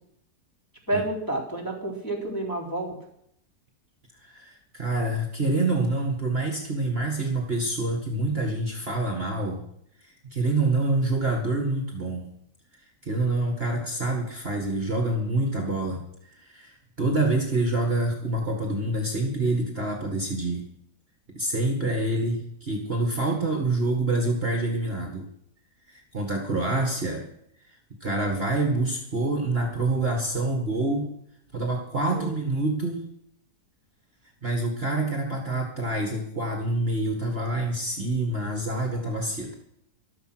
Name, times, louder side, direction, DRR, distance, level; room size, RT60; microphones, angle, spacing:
voice 1, 0.9-3.0 32.1-32.4, right 1 dB, 10° left, -1 dB, 3.7 m, -29 dB
voice 2, 4.2-9.6 10.0-12.3 13.0-16.0 16.3-20.6 21.3-25.3 26.1-27.2 28.0-31.1 31.5-33.0 34.4-39.5, right 2 dB, 35° right, 2 dB, 2.1 m, -26 dB
14.0 x 12.5 x 6.2 m, 0.71 s
omnidirectional pair, 1.8 m